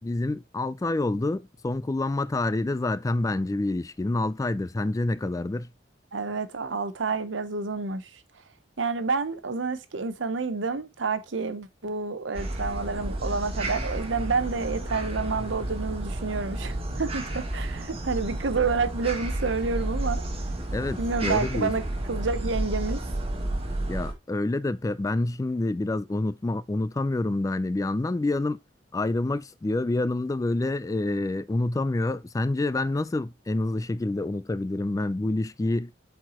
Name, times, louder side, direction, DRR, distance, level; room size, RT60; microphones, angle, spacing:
voice 1, 0.0-5.7 20.7-21.7 23.9-28.6 28.9-35.9, left 2 dB, 20° left, 0.3 m, -27 dB
voice 2, 6.1-8.0 8.8-20.2 21.0-23.0, right 4 dB, 85° right, 0.8 m, -29 dB
sound 1, 12.3-24.1, right 1 dB, 30° right, 1.5 m, -31 dB
7.8 x 4.6 x 3.0 m
head